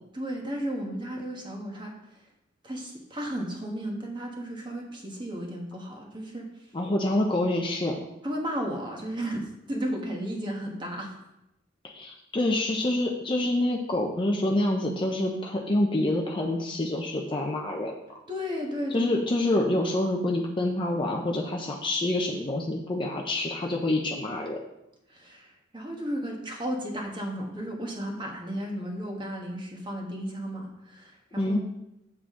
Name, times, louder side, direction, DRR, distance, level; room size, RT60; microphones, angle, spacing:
voice 1, 0.1-1.9 2.6-6.5 8.2-11.1 18.3-19.1 25.1-31.6, equal, 25° right, 0 dB, 1.3 m, -34 dB
voice 2, 6.7-8.0 11.8-17.9 18.9-24.6 31.4-31.6, left 1 dB, 25° left, 1 dB, 0.6 m, -27 dB
7.4 x 7.2 x 3.7 m, 0.87 s
head